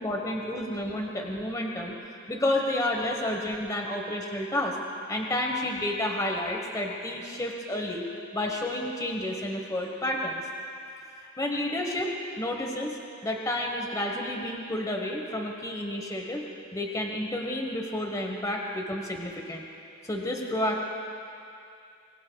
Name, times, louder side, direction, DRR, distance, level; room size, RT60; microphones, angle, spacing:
voice 1, 0.0-2.0 2.3-4.8 5.1-8.0 8.3-10.4 11.2-13.0 13.2-16.4 16.7-19.7 20.0-20.8, left 1 dB, 15° left, 1 dB, 1.2 m, -30 dB
24.0 x 24.0 x 2.3 m, 2.6 s
head